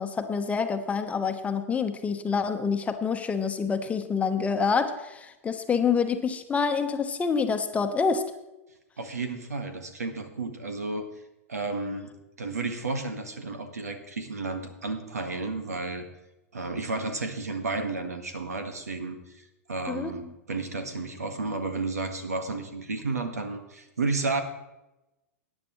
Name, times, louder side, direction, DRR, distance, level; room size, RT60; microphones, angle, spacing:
voice 1, 0.0-8.2 19.9-20.1, left 5 dB, 15° left, 7 dB, 1.0 m, -27 dB
voice 2, 9.0-11.1 11.5-12.1 12.4-16.0 16.5-19.4 19.7-24.4, right 3 dB, 85° right, 7 dB, 1.6 m, -32 dB
17.5 x 9.8 x 3.1 m, 0.97 s
hypercardioid pair, 105°, 8 cm